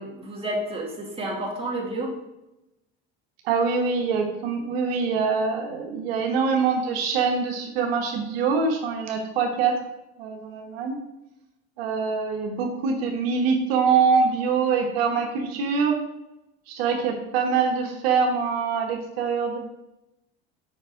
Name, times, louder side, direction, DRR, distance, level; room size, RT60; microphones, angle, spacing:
voice 1, 0.0-2.1, right 1 dB, 20° right, -2 dB, 2.5 m, -30 dB
voice 2, 3.4-9.7 10.2-11.0 11.8-16.0 16.7-19.6, right 5 dB, 85° right, 2 dB, 1.2 m, -24 dB
6.5 x 5.4 x 4.9 m, 0.94 s
supercardioid pair, 90°, 30 cm